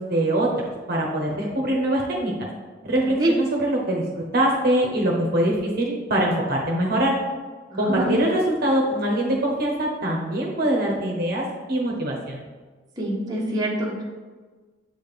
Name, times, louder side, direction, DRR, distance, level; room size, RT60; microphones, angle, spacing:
voice 1, 0.0-2.3 2.8-7.2 7.8-12.4, right 1 dB, 50° right, -2 dB, 1.0 m, -23 dB
voice 2, 7.7-8.2 13.0-14.0, right 1 dB, 20° right, -4 dB, 1.1 m, -25 dB
7.7 x 4.3 x 3.6 m, 1.3 s
head